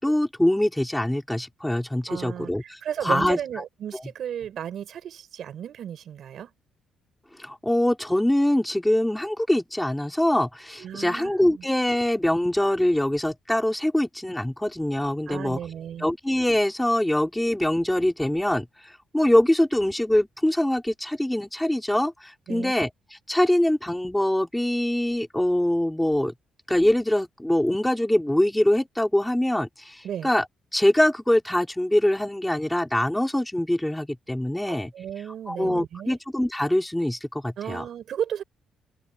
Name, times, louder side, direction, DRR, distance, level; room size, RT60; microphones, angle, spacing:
voice 1, 0.0-3.4 3.9-4.0 7.4-15.6 16.0-22.9 23.3-26.3 26.7-30.4 30.7-34.9 35.5-37.8, left 1 dB, 5° left, 4.1 m, -23 dB
voice 2, 2.1-6.5 10.8-11.7 15.3-16.1 22.5-22.7 30.0-30.3 34.7-36.2 37.6-38.4, right 9 dB, 55° right, 6.3 m, -34 dB
open air
cardioid pair, 155°, 0 cm